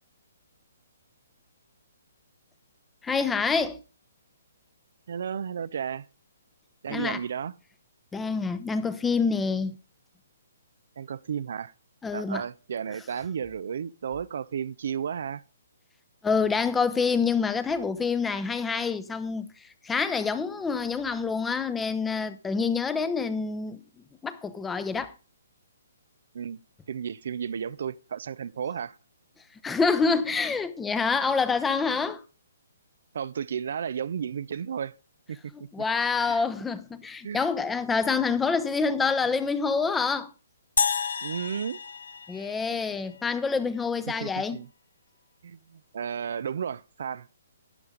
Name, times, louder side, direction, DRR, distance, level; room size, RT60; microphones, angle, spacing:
voice 1, 3.0-3.8 6.9-7.2 8.1-9.8 12.0-12.4 16.2-23.8 24.2-25.1 29.6-32.2 35.5-40.3 42.3-44.6, left 5 dB, 10° left, 0.7 m, -27 dB
voice 2, 5.1-6.1 6.8-7.5 11.0-11.7 12.1-15.4 26.3-26.6 26.9-29.0 31.9-32.0 33.1-34.9 35.3-35.4 36.2-36.4 37.2-37.5 41.2-41.8 44.2-44.7 45.4-47.3, right 7 dB, 65° right, 0.4 m, -33 dB
sound 1, 40.8-43.2, left 6 dB, 75° left, 0.6 m, -30 dB
12.0 x 9.2 x 3.8 m
hypercardioid pair, 145°, 0 cm